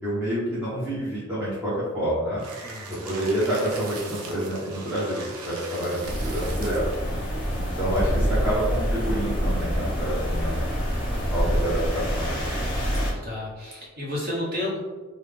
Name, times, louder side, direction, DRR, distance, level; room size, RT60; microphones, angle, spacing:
voice 1, 0.0-2.4 3.0-6.8 7.5-10.6 11.3-12.3, right 1 dB, 5° right, -12 dB, 0.9 m, -28 dB
sound 1, 2.4-7.0, right 3 dB, 85° right, 0.6 m, -40 dB
voice 2, 2.6-3.1 7.1-7.6 13.2-14.8, left 1 dB, 40° right, -5 dB, 1.1 m, -32 dB
sound 2, 6.0-13.1, equal, 40° left, 1.2 m, -26 dB
3.8 x 2.3 x 3.4 m, 1.3 s
head